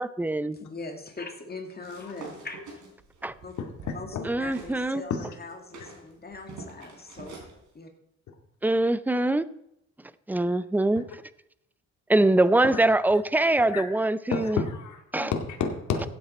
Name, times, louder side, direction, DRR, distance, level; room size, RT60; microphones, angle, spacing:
voice 1, 0.0-0.6 3.2-3.3 4.2-5.0 8.6-9.5 10.3-11.0 12.1-14.6 15.1-15.3, right 2 dB, 5° right, 16 dB, 0.5 m, -23 dB
voice 2, 0.5-2.6 3.4-3.5 3.9-7.4 7.7-7.9, left 3 dB, 30° left, 4 dB, 2.1 m, -41 dB
sound 1, 1.8-4.8 5.1-7.5, right 3 dB, 75° right, 4.0 m, -46 dB
voice 3, 4.1-4.5 5.1-5.2 12.7-12.8 13.7-13.8 14.3-16.1, left 6 dB, 70° left, 2 dB, 2.4 m, -30 dB
15.5 x 8.9 x 4.3 m, 0.79 s
cardioid pair, 90°, 30 cm